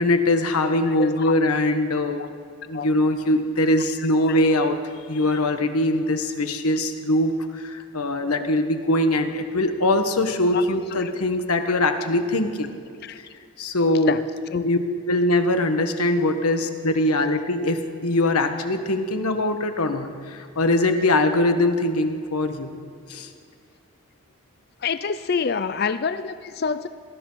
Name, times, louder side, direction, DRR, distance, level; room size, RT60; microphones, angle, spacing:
voice 1, 0.0-2.3 2.7-4.8 5.1-12.7 13.1-13.3 13.6-14.1 14.6-14.8 15.1-22.8 23.1-23.3, left 1 dB, 90° left, 7 dB, 1.4 m, -22 dB
voice 2, 0.8-1.4 2.2-2.3 2.7-2.9 4.3-4.4 10.5-11.1 11.7-11.8 13.0-13.3 14.1-14.2 14.5-14.7 24.8-26.9, left 5 dB, 45° left, 12 dB, 0.4 m, -27 dB
19.5 x 13.0 x 5.7 m, 2.4 s
head